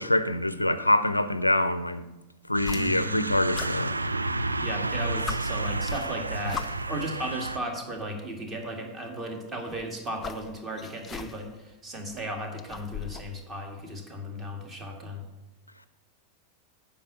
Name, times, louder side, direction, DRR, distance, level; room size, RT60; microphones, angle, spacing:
voice 1, 0.0-2.0 2.5-3.9, left 1 dB, 85° left, 0.4 m, -25 dB
sound 1, 2.5-7.6, right 2 dB, 80° right, 0.3 m, -31 dB
sound 2, 2.6-3.2 3.5-4.6 4.9-5.0 5.2-7.0 8.1-8.2 9.5-11.6 11.9-13.4, left 7 dB, 20° left, 0.4 m, -40 dB
voice 2, 2.7-3.2 4.6-15.3, right 1 dB, 25° right, 1.8 m, -35 dB
8.6 x 5.1 x 6.7 m
figure-of-eight pair, 90°, 0 cm